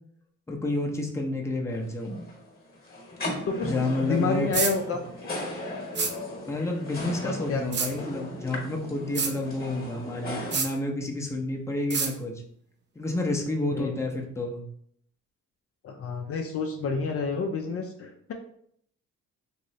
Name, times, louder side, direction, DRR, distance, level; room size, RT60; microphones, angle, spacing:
voice 1, 0.5-2.3 3.6-4.5 4.9-5.0 6.5-12.3 13.0-14.6, left 2 dB, 10° left, 0 dB, 0.6 m, -30 dB
sound 1, 1.7-10.6, left 1 dB, 30° left, 1.1 m, -37 dB
voice 2, 4.0-5.0 7.2-7.6 13.7-13.9 15.8-18.3, left 4 dB, 50° left, 3 dB, 0.5 m, -29 dB
sound 2, 4.5-4.7 5.9-6.1 7.7-7.9 9.1-9.3 10.5-10.7 11.9-12.1, right 5 dB, 35° right, 0.5 m, -26 dB
3.1 x 2.9 x 2.8 m, 0.67 s
cardioid pair, 90°, 30 cm